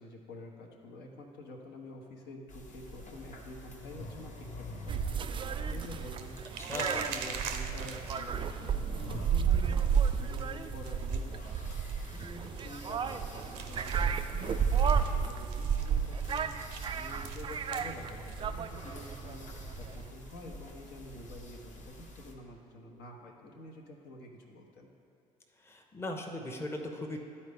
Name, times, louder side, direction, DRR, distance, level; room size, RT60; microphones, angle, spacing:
voice 1, 0.0-11.7 12.1-24.9, left 1 dB, 60° left, 0 dB, 1.0 m, -48 dB
sound 1, 2.5-22.3, left 1 dB, 40° left, 1.1 m, -48 dB
sound 2, 2.9-21.4, right 7 dB, 70° right, 0.6 m, -48 dB
sound 3, 4.9-20.1, right 7 dB, 25° right, 0.3 m, -32 dB
voice 2, 6.6-7.1 25.6-27.2, left 1 dB, 15° left, 2 dB, 0.8 m, -38 dB
11.5 x 4.2 x 3.5 m, 2.5 s
hypercardioid pair, 60°, 19 cm